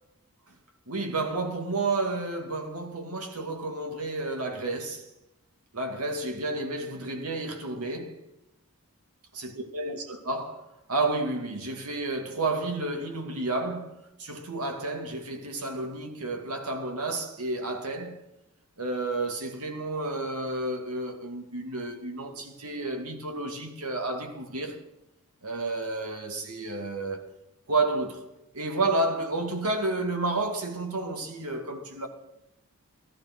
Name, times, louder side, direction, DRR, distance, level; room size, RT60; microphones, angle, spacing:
voice 1, 0.9-5.1 5.7-8.2 9.3-18.2 18.8-24.8 25.4-27.3 27.7-28.2 28.5-32.1, right 2 dB, 85° right, 2.4 m, -31 dB
15.0 x 14.5 x 6.1 m
head